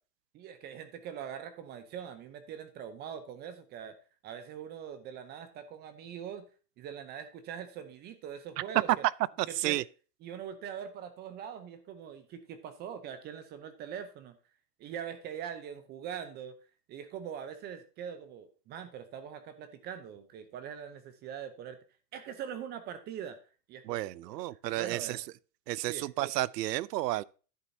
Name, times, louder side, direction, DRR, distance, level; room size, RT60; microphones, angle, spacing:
voice 1, 0.3-3.9 4.2-6.4 6.8-9.0 9.5-9.8 10.2-14.4 14.8-16.6 16.9-21.8 22.1-23.4 23.7-25.2 25.9-26.0, right 8 dB, 20° right, 0.6 m, -42 dB
voice 2, 9.4-9.8 23.8-25.2 25.7-27.2, right 16 dB, 75° right, 0.6 m, -32 dB
10.5 x 7.6 x 2.7 m
supercardioid pair, 150°, 49 cm